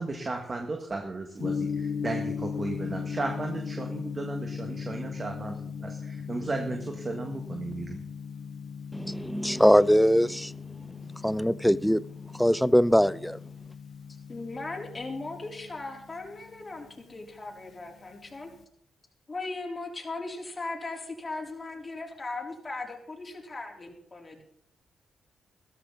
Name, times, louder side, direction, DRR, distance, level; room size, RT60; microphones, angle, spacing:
voice 1, 0.0-8.0, right 3 dB, 40° right, 2.0 m, -35 dB
Gong, 1.4-18.6, left 6 dB, 65° left, 1.2 m, -38 dB
voice 2, 8.9-10.5 11.2-12.0 12.3-13.4, equal, ahead, 0.5 m, -22 dB
voice 3, 14.3-18.5 19.3-24.4, left 3 dB, 35° left, 3.9 m, -38 dB
14.5 x 13.5 x 4.0 m
supercardioid pair, 55°, 0 cm